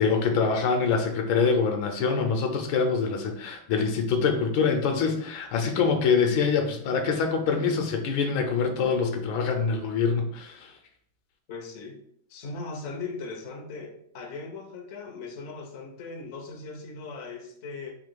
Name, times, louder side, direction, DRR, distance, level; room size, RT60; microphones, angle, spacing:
voice 1, 0.0-10.7, left 5 dB, 80° left, 4 dB, 1.5 m, -25 dB
voice 2, 11.5-12.0 12.3-17.9, left 4 dB, 60° left, 2 dB, 0.7 m, -38 dB
3.7 x 2.7 x 4.5 m, 0.66 s
omnidirectional pair, 2.2 m